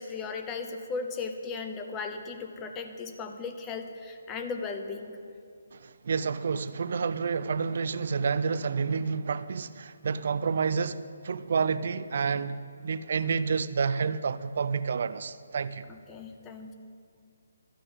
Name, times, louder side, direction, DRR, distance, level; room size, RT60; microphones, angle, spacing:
voice 1, 0.0-5.2 15.9-16.8, left 4 dB, 15° left, 0.8 m, -37 dB
voice 2, 5.7-15.9, right 5 dB, 55° right, 0.5 m, -29 dB
12.5 x 6.0 x 7.9 m
hypercardioid pair, 155°, 0 cm